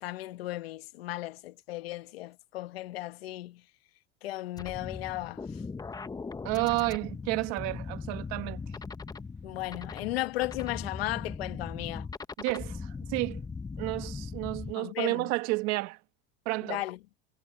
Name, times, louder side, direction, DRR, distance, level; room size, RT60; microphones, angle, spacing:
voice 1, 0.0-3.6 4.2-5.4 9.4-12.1 14.8-15.3 16.6-17.0, left 17 dB, 90° left, 1.7 m, -35 dB
sound 1, 4.6-14.7, left 4 dB, 15° left, 1.0 m, -39 dB
voice 2, 6.4-8.6 12.4-13.4 13.8-16.0 16.5-16.8, right 23 dB, 60° right, 1.6 m, -31 dB
supercardioid pair, 115°, 29 cm